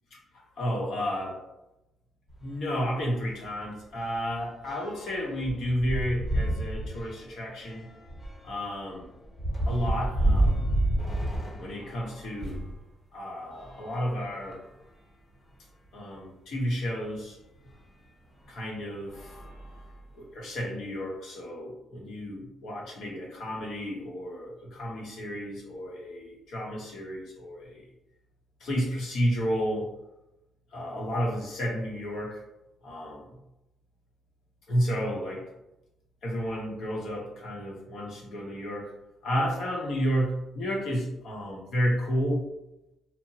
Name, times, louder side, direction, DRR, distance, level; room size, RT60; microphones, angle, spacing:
voice 1, 0.6-1.4 2.4-7.8 8.4-9.1 9.7-10.7 11.6-12.6 13.1-14.6 15.9-17.4 18.5-19.3 20.1-27.8 28.6-29.9 30.7-32.4 32.8-33.3 34.7-35.5 36.2-38.9 39.2-42.5, equal, 70° left, -2 dB, 0.8 m, -31 dB
sound 1, 2.3-2.5 2.8-2.9 3.3-12.8 13.5-14.8 15.5-15.6 15.9-16.0 17.6-17.8 18.4-18.6 19.1-20.3, right 1 dB, 35° left, 1.0 m, -31 dB
2.8 x 2.0 x 2.7 m, 0.91 s
cardioid pair, 90°, 0 cm